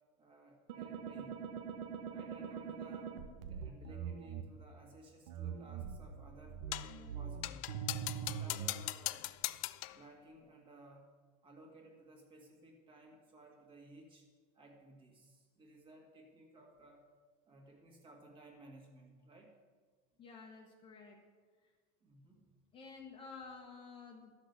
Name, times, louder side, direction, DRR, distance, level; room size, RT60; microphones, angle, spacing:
voice 1, 0.2-1.4 2.1-3.1 3.4-7.7 8.2-9.3 9.9-11.1 11.4-14.3 14.5-17.1 17.5-19.5 22.0-22.5, right 1 dB, 25° right, 1 dB, 2.1 m, -58 dB
sound 1, 0.7-4.4 5.3-8.8, right 7 dB, 85° right, 1.1 m, -43 dB
sound 2, 6.7-7.0 7.4-10.0, left 19 dB, 55° left, 0.4 m, -40 dB
voice 2, 20.2-21.2 22.7-24.3, left 4 dB, 25° left, 1 dB, 1.2 m, -51 dB
12.5 x 6.5 x 6.7 m, 1.5 s
supercardioid pair, 155°, 21 cm